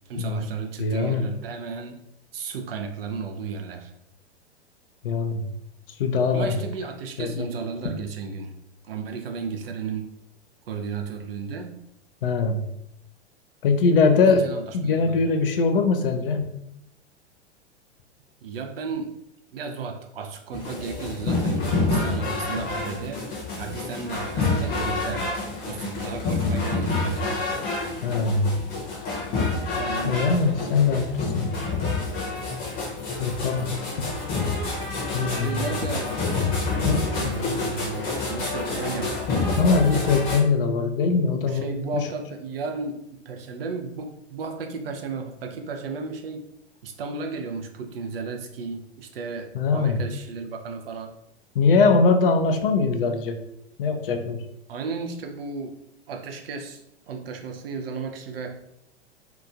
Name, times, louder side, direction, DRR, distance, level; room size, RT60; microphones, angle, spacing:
voice 1, 0.1-2.0 2.3-3.9 6.3-8.5 8.8-10.1 10.7-11.7 14.2-15.2 18.4-19.2 19.5-23.2 23.6-27.3 29.7-30.3 35.2-36.2 37.1-39.1 41.3-46.5 46.8-51.1 54.7-55.7 56.1-58.5, right 5 dB, 60° right, 4 dB, 0.5 m, -34 dB
voice 2, 0.8-1.2 5.0-5.4 6.0-6.5 7.2-7.5 12.2-12.6 13.6-14.5 14.7-16.5 28.0-28.6 30.0-31.1 31.3-31.5 33.2-33.7 34.0-34.1 35.1-35.7 36.8-37.3 39.6-42.1 49.5-50.0 51.6-53.4 53.8-54.4, left 4 dB, 55° left, 6 dB, 0.4 m, -22 dB
sound 1, 20.5-40.4, left 3 dB, 25° left, 0.8 m, -28 dB
2.9 x 2.4 x 2.3 m, 0.79 s
figure-of-eight pair, 95°, 33 cm